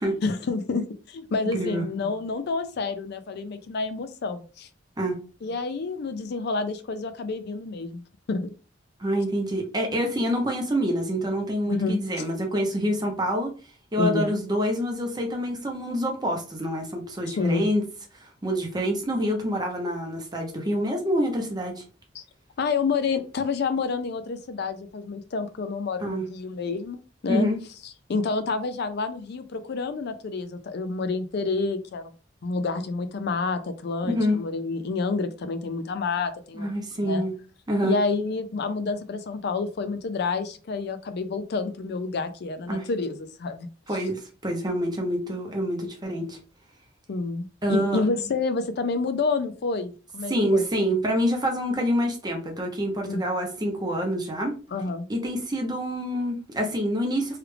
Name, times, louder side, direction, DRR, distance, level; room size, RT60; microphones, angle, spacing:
voice 1, 0.2-4.7 5.4-8.5 11.7-12.0 14.0-14.3 17.4-17.7 22.1-22.2 22.6-27.5 28.1-32.1 32.4-36.7 37.0-37.2 37.8-43.7 47.1-50.6 53.0-53.3 54.7-55.1, left 4 dB, 60° left, 10 dB, 0.4 m, -29 dB
voice 2, 1.5-1.8 5.0-5.2 9.0-13.5 13.9-17.8 18.2-21.8 26.0-26.2 27.3-27.6 34.0-34.4 36.6-37.3 37.7-38.0 42.7-42.9 43.9-46.4 47.6-48.0 50.3-54.5 55.1-57.4, equal, 20° right, 2 dB, 0.8 m, -26 dB
3.2 x 2.4 x 3.3 m, 0.35 s
head